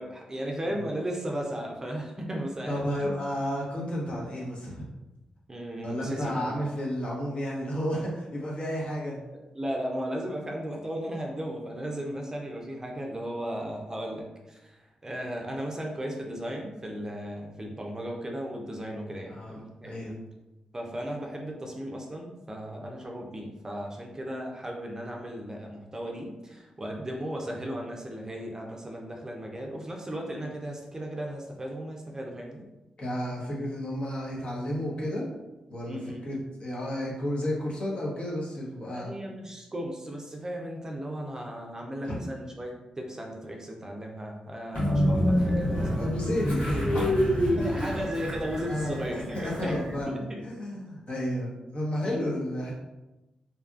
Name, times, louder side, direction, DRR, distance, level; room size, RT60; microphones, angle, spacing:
voice 1, 0.0-3.1 5.5-6.7 9.5-20.1 20.7-32.7 35.9-36.3 38.9-46.1 47.5-49.8 50.1-50.4 52.0-52.2, equal, 25° right, 0 dB, 0.5 m, -36 dB
voice 2, 2.7-4.8 5.8-9.2 19.3-20.2 33.0-35.3 35.7-39.1 42.0-42.1 45.7-47.5 48.7-49.0 49.3-52.7, equal, 55° left, -4 dB, 0.9 m, -32 dB
Train, 44.7-50.0, equal, 80° left, 1.2 m, -27 dB
2.7 x 2.4 x 2.3 m, 1.0 s
cardioid pair, 65°, 2 cm